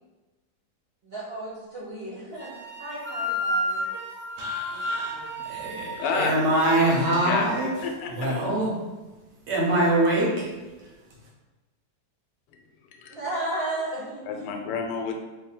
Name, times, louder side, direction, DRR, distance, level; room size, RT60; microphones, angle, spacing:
voice 1, 1.0-3.9 13.1-14.5, right 1 dB, 45° right, -7 dB, 0.9 m, -34 dB
sound 1, 2.4-7.7, equal, 10° right, 0.5 m, -32 dB
voice 2, 4.4-5.1 5.4-7.7 8.1-8.7 9.5-10.5, right 1 dB, 85° right, -3 dB, 1.5 m, -24 dB
voice 3, 6.0-6.3 6.9-7.5 7.8-8.4 13.0-13.2 14.3-15.2, left 5 dB, 85° left, 2 dB, 1.2 m, -30 dB
3.2 x 2.2 x 4.2 m, 1.2 s
omnidirectional pair, 1.8 m